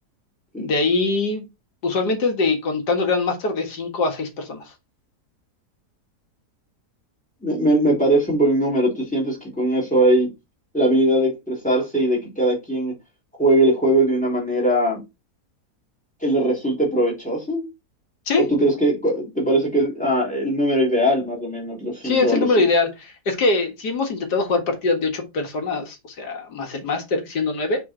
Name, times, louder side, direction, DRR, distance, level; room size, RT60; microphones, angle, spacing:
voice 1, 0.6-1.5 1.8-4.6 18.3-18.4 22.0-27.8, left 3 dB, 80° left, 2.2 m, -23 dB
voice 2, 7.4-10.3 10.7-12.9 13.4-15.0 16.2-17.6 18.4-22.7, right 1 dB, 5° left, 3.2 m, -20 dB
6.3 x 4.3 x 4.3 m
omnidirectional pair, 1.7 m